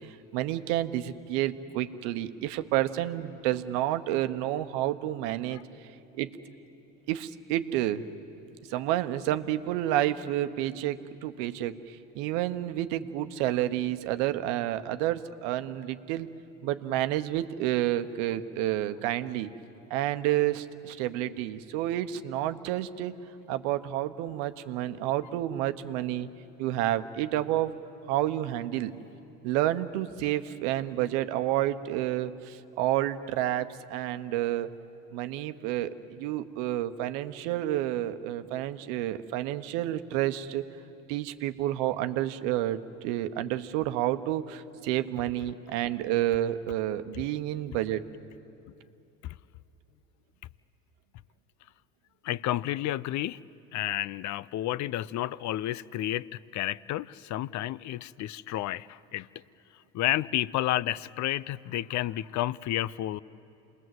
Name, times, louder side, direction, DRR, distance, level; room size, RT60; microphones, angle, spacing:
voice 1, 0.0-5.6 6.1-6.3 7.1-8.0 8.7-16.3 16.6-19.5 19.9-23.1 23.5-26.3 26.6-27.7 28.1-28.9 29.4-34.7 35.1-40.6 41.1-48.0, right 13 dB, 75° right, 10 dB, 1.1 m, -30 dB
voice 2, 52.2-53.4 53.7-56.3 56.5-59.3 59.9-63.2, left 14 dB, 50° left, 20 dB, 0.6 m, -31 dB
27.5 x 20.5 x 7.8 m, 2.9 s
supercardioid pair, 80°, 36 cm